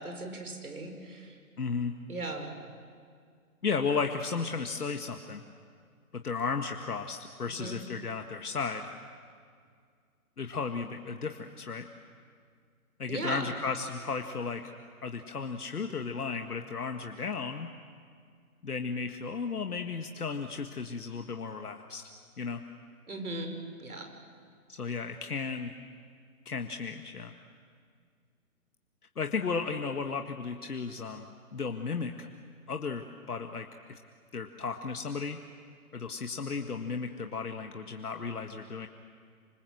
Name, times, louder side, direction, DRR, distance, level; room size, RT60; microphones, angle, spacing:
voice 1, 0.0-1.3 2.1-2.5 7.5-7.8 13.1-13.5 23.1-23.5 23.8-24.1, right 2 dB, 75° right, 5 dB, 5.8 m, -38 dB
voice 2, 1.6-1.9 3.6-5.4 6.1-8.9 10.4-11.9 13.0-14.6 15.0-17.7 18.6-22.0 22.4-22.6 24.7-25.7 26.5-27.3 29.2-32.3 32.7-34.0 34.3-35.4 35.9-38.9, left 5 dB, 90° left, 5 dB, 1.8 m, -34 dB
26.5 x 26.0 x 7.8 m, 2.1 s
hypercardioid pair, 160°, 44 cm